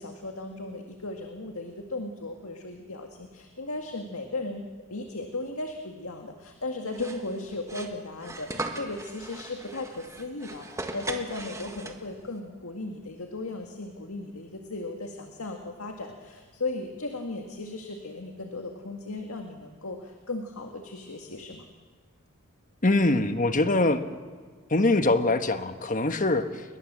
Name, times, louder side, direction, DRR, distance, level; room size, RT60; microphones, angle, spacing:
voice 1, 0.0-4.6 4.9-21.6, left 2 dB, 75° left, 3 dB, 1.9 m, -36 dB
sound 1, 6.9-12.3, right 2 dB, 15° right, 1.7 m, -39 dB
voice 2, 22.8-24.0 24.7-26.6, left 2 dB, 35° left, 9 dB, 1.3 m, -23 dB
29.0 x 22.0 x 7.6 m, 1.5 s
head